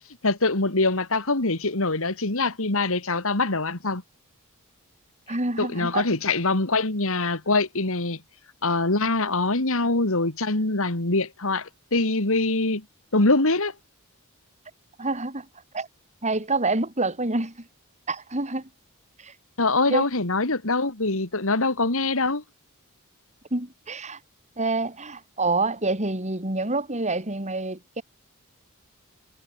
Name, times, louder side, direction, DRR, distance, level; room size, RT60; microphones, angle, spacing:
voice 1, 0.0-4.0 5.6-8.2 8.6-12.8 13.1-13.7 19.6-22.4, left 3 dB, 65° left, 2.5 m, -24 dB
voice 2, 5.3-6.1 15.0-15.5 15.7-15.9 16.2-17.7 18.1-18.7 19.2-19.3 19.9-20.0 23.5-24.2 24.6-28.0, right 2 dB, 30° right, 4.3 m, -27 dB
head